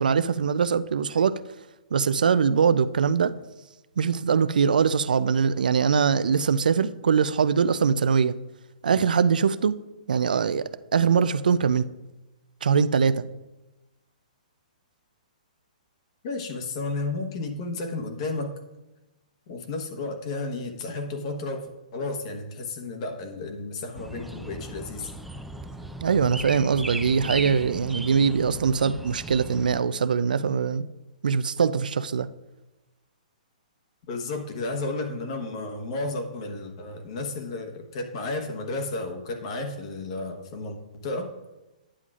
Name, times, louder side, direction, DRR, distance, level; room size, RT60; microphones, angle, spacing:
voice 1, 0.0-1.4 1.9-3.3 4.0-8.4 8.8-9.7 10.1-11.9 12.6-13.2 26.0-30.9 31.2-32.3, right 6 dB, 85° right, 0.4 m, -22 dB
voice 2, 16.2-18.5 19.5-25.1 34.1-41.3, left 2 dB, 45° left, 1.2 m, -32 dB
sound 1, 23.9-29.8, right 1 dB, ahead, 0.4 m, -38 dB
9.8 x 7.4 x 2.4 m
hypercardioid pair, 145°, 4 cm